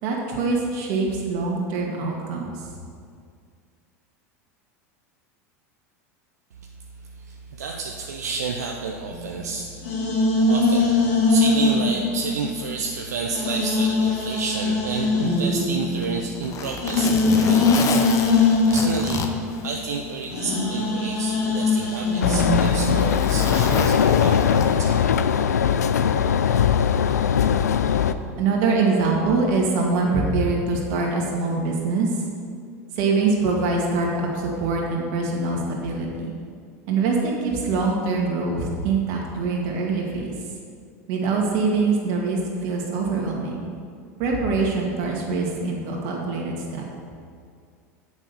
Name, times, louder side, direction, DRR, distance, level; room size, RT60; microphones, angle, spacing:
voice 1, 0.0-2.5 28.4-32.1 33.0-36.3 36.9-40.3 41.1-43.7 44.2-46.8, right 3 dB, 60° right, -1 dB, 2.2 m, -24 dB
voice 2, 7.2-9.9 10.5-19.3 19.6-25.1, right 4 dB, 85° right, 1 dB, 0.6 m, -30 dB
sound 1, 9.1-12.9 13.3-22.7, left 3 dB, 70° left, 2.3 m, -22 dB
Zipper (clothing), 15.8-20.3 20.7-20.8 21.6-25.0 26.2-26.4, left 6 dB, 40° left, 0.8 m, -30 dB
sound 2, 22.2-28.1, left 8 dB, 90° left, 0.4 m, -20 dB
7.4 x 6.1 x 6.9 m, 2.2 s
hypercardioid pair, 90°, 9 cm